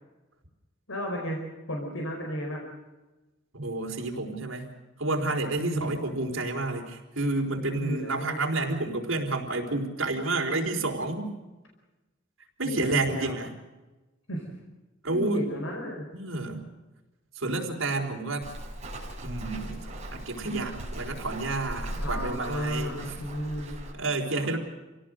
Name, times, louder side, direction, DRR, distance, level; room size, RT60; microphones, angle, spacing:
voice 1, 0.9-1.4 1.7-2.6 5.6-6.1 7.6-8.4 12.6-13.3 14.3-14.5 15.1-16.1 21.9-23.8 24.4-24.6, equal, 75° left, 0 dB, 5.0 m, -34 dB
voice 2, 3.5-4.7 5.0-11.3 12.6-13.5 15.0-15.4 16.1-16.7 17.4-18.5 19.2-23.1 23.9-24.6, right 2 dB, 75° right, 2 dB, 4.5 m, -30 dB
Walk footsteps, 18.4-23.9, right 1 dB, 35° right, 5.6 m, -38 dB
28.0 x 17.5 x 6.6 m, 1.1 s
head